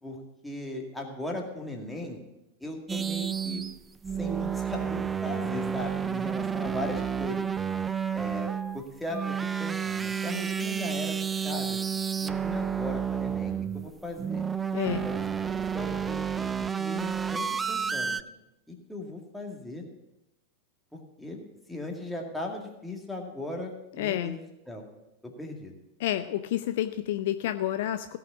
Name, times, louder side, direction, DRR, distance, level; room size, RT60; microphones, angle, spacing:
voice 1, 0.0-2.2 2.6-3.7 4.1-7.5 8.1-11.2 11.4-11.8 12.2-14.5 15.0-15.5 15.7-16.5 16.8-18.2 18.7-19.8 21.2-21.4 21.7-24.9 25.2-25.7, left 1 dB, 5° left, 0 dB, 2.1 m, -38 dB
sound 1, 2.9-18.2, right 7 dB, 15° right, 0.4 m, -30 dB
voice 2, 14.7-15.1 24.0-24.3 26.0-28.2, left 12 dB, 55° left, 10 dB, 0.5 m, -29 dB
16.5 x 5.8 x 7.0 m, 0.91 s
figure-of-eight pair, 90°, 0 cm